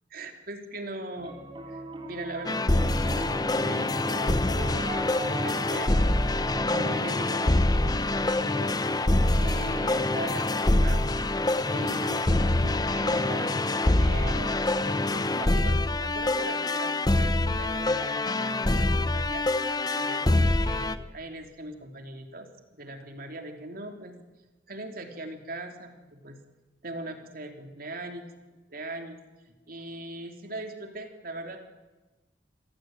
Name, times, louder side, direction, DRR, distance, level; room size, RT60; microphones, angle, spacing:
voice 1, 0.1-1.4 1.7-4.9 5.2-6.0 6.7-8.7 9.4-11.0 11.7-14.6 15.1-19.5 19.9-24.1 24.7-26.4 26.8-28.3 28.7-29.2 29.7-31.6, right 2 dB, 55° right, 4 dB, 3.4 m, -40 dB
Piano, 1.2-11.5, right 1 dB, 30° right, 3.8 m, -41 dB
sound 1, 2.5-21.0, left 2 dB, 20° left, 0.9 m, -25 dB
27.5 x 17.5 x 9.2 m, 1.1 s
head